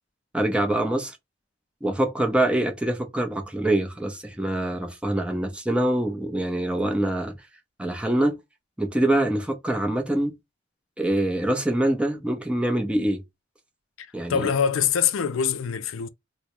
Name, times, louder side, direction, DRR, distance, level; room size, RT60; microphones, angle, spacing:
voice 1, 0.3-1.2 1.8-7.3 7.8-8.4 8.8-10.3 11.0-13.2 14.1-14.5, right 1 dB, 5° right, 0.7 m, -24 dB
voice 2, 14.0-16.1, left 7 dB, 90° left, 0.4 m, -24 dB
3.6 x 2.1 x 2.9 m
head